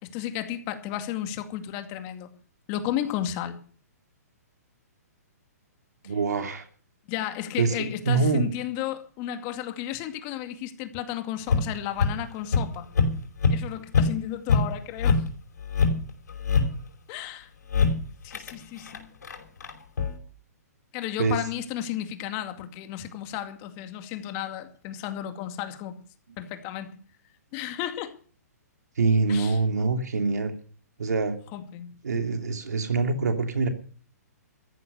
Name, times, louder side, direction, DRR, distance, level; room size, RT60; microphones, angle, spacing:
voice 1, 0.0-2.3 2.7-3.6 6.0-6.1 7.1-12.9 13.5-15.2 17.1-17.5 18.2-19.1 20.9-26.0 26.4-27.0 27.5-28.1 29.3-29.6 31.5-31.9, left 11 dB, 35° left, 2.3 m, -33 dB
voice 2, 6.0-6.7 7.6-8.4 21.2-21.4 29.0-30.5 31.0-31.4 32.0-33.7, right 4 dB, 80° right, 2.9 m, -25 dB
sound 1, 11.5-12.1 12.5-12.7 12.9-13.1 13.4-13.6 13.9-14.1 14.5-14.7 15.0-15.3 15.6-16.7 17.7-18.0 18.3-18.5 18.8-20.2, left 4 dB, 80° left, 5.1 m, -23 dB
14.0 x 11.0 x 6.7 m
hypercardioid pair, 140°, 9 cm